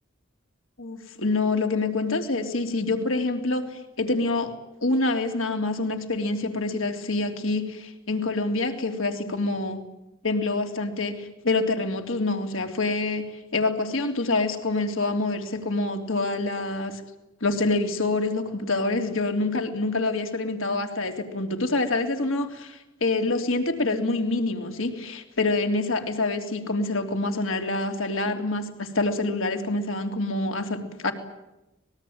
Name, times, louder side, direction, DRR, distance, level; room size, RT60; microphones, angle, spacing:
voice 1, 0.8-4.5 4.8-9.8 10.2-13.3 13.5-17.0 17.4-31.1, left 2 dB, 70° left, 5 dB, 3.2 m, -26 dB
25.5 x 21.0 x 8.7 m, 0.93 s
head